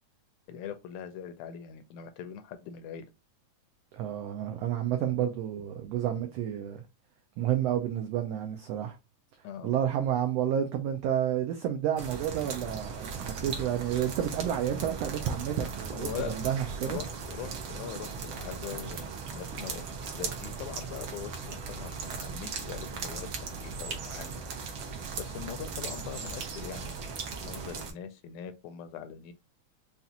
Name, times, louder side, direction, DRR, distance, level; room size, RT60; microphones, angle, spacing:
voice 1, 0.5-3.1 9.4-9.8 15.9-16.4 16.8-19.1 19.3-24.4 25.2-27.1 27.4-29.3, left 9 dB, 80° left, 1.8 m, -42 dB
voice 2, 3.9-6.8 7.4-9.0 9.6-17.0, right 10 dB, 85° right, 1.4 m, -30 dB
sound 1, 12.0-27.9, right 5 dB, 70° right, 1.2 m, -38 dB
5.5 x 2.4 x 2.7 m
omnidirectional pair, 3.5 m